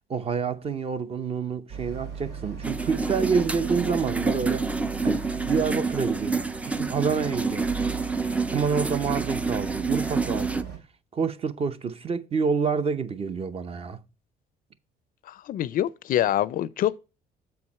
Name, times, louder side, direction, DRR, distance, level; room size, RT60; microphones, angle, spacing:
voice 1, 0.1-4.7 5.0-5.2 5.5-6.4 6.8-7.7 8.5-10.7 11.1-14.0, right 5 dB, 35° right, 0.7 m, -27 dB
Boat Water vehicle, 1.7-10.8, right 6 dB, 80° right, 2.9 m, -38 dB
sound 1, 2.6-10.6, right 4 dB, 10° right, 0.3 m, -28 dB
voice 2, 15.3-17.0, left 12 dB, 55° left, 0.4 m, -25 dB
7.3 x 4.7 x 4.2 m
cardioid pair, 110°, 17 cm